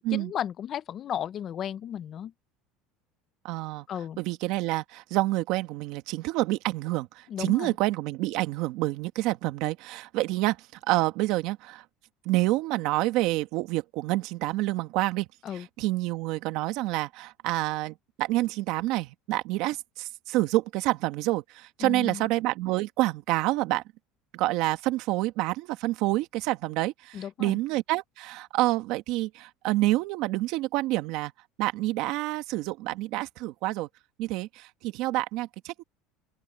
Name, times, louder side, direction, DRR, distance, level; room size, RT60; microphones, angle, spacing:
voice 1, 0.0-2.3 3.9-4.2 7.3-7.7 15.4-15.7 21.8-22.2 27.1-27.6, left 9 dB, 40° left, 0.7 m, -34 dB
voice 2, 3.4-3.8 4.2-11.8 12.2-23.8 24.3-31.3 31.6-33.9 34.2-35.8, right 18 dB, 65° right, 1.7 m, -28 dB
open air
supercardioid pair, 130°, 0 cm